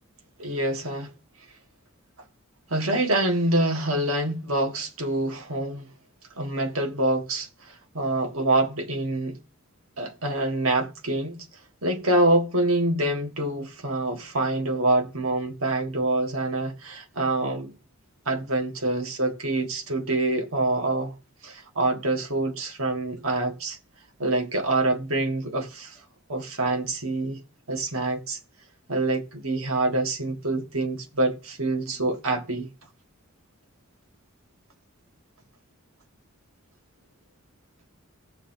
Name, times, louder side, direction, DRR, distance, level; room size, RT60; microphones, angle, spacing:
voice 1, 0.4-1.1 2.7-5.9 6.4-9.4 10.0-11.5 11.8-17.7 18.3-21.1 21.4-23.8 24.2-26.0 26.3-27.4 27.7-28.4 28.9-32.7, right 2 dB, 70° right, 1.4 m, -26 dB
16.5 x 7.2 x 2.6 m
head